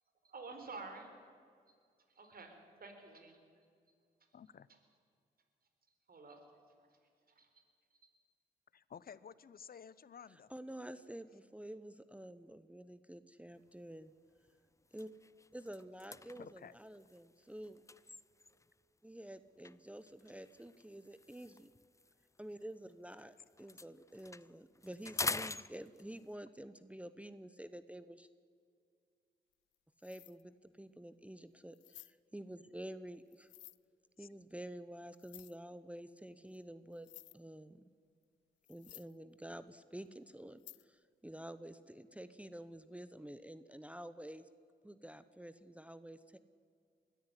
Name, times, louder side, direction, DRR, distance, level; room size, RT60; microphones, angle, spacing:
voice 1, 0.2-1.1 2.1-3.7 4.7-4.8 6.1-6.4 6.8-7.0 7.3-7.5 7.9-8.1, right 3 dB, 55° right, 6 dB, 4.3 m, -51 dB
voice 2, 4.3-4.7 8.7-10.5 16.4-16.8 34.2-34.3, left 7 dB, 55° left, 18 dB, 0.9 m, -53 dB
voice 3, 10.5-14.1 14.9-15.1 15.5-17.8 19.0-21.7 22.4-28.3 30.0-33.5 34.2-37.1 37.3-37.9 38.7-44.5 44.8-46.4, right 1 dB, 5° right, 12 dB, 0.9 m, -49 dB
sound 1, 13.7-13.9 14.4-14.5 14.8-18.8 19.6-23.2 23.5-26.3, left 3 dB, 15° left, 0.5 m, -45 dB
sound 2, 29.5-29.7 30.0-30.4 30.9-31.0 31.7-32.1 33.3-33.8 35.1-35.6 36.5-36.6 36.9-37.3 38.2-38.3 38.6-39.2 40.6-40.8, left 17 dB, 85° left, 0.4 m, -55 dB
21.5 x 13.5 x 9.9 m, 2.2 s
supercardioid pair, 50°, 18 cm